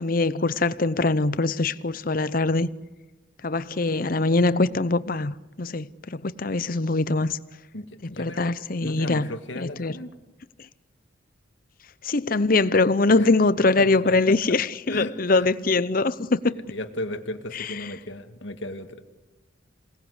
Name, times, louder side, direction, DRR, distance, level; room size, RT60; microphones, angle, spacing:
voice 1, 0.0-2.7 3.4-7.4 8.2-9.3 9.6-9.9 12.0-16.5 17.5-17.7, left 3 dB, 45° left, 0.7 m, -23 dB
voice 2, 7.7-10.2 13.2-13.3 13.8-14.6 14.9-15.5 16.7-19.0, left 1 dB, 70° left, 1.9 m, -35 dB
27.5 x 19.0 x 8.1 m
head